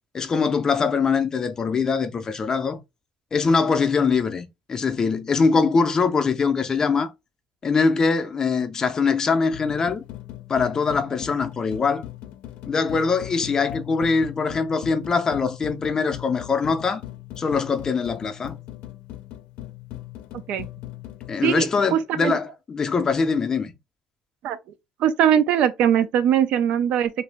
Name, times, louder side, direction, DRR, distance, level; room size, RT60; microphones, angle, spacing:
voice 1, 0.1-2.8 3.3-7.1 7.6-10.0 10.5-12.1 12.7-17.0 17.4-18.6 21.3-23.7, left 5 dB, 30° left, 0.5 m, -22 dB
sound 1, 9.5-21.4, left 14 dB, 80° left, 0.5 m, -39 dB
voice 2, 20.3-20.7 21.4-22.4 24.4-24.6 25.0-27.1, right 9 dB, 65° right, 0.4 m, -21 dB
2.9 x 2.5 x 3.3 m
cardioid pair, 140°, 2 cm